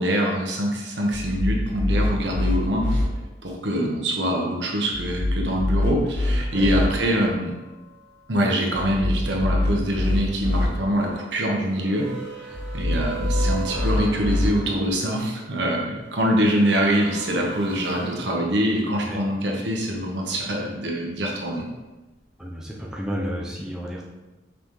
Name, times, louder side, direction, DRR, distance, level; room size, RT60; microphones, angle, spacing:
voice 1, 0.0-3.0 3.4-7.5 8.3-12.1 12.4-21.6, equal, 75° right, 0 dB, 1.2 m, -24 dB
sound 1, 1.1-3.0 4.9-6.9 8.7-10.7 12.5-14.5, left 1 dB, 45° left, 1.0 m, -24 dB
sound 2, 6.5-8.2 10.6-15.2 16.1-19.6 20.1-20.5, right 4 dB, 30° right, 1.8 m, -40 dB
voice 2, 22.4-24.1, equal, 5° right, -4 dB, 0.7 m, -32 dB
5.7 x 5.7 x 3.3 m, 1.1 s
head